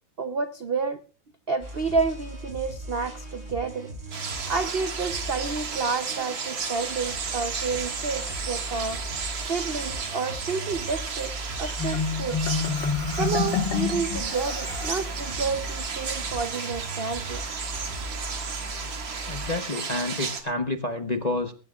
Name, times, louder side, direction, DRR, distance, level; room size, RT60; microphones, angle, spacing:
voice 1, 0.2-1.0 1.5-3.9 4.5-9.0 9.5-12.4 13.2-17.4, right 4 dB, 55° right, 8 dB, 0.6 m, -30 dB
sound 1, 1.6-19.6, right 1 dB, 30° right, 5.3 m, -38 dB
sound 2, 4.1-20.4, right 5 dB, 85° right, 2.7 m, -33 dB
Marimba xylophone, 11.8-15.1, left 6 dB, 70° left, 2.1 m, -28 dB
voice 2, 19.3-21.5, left 2 dB, 35° left, 5 dB, 0.7 m, -29 dB
20.5 x 15.5 x 2.4 m, 0.35 s
omnidirectional pair, 2.1 m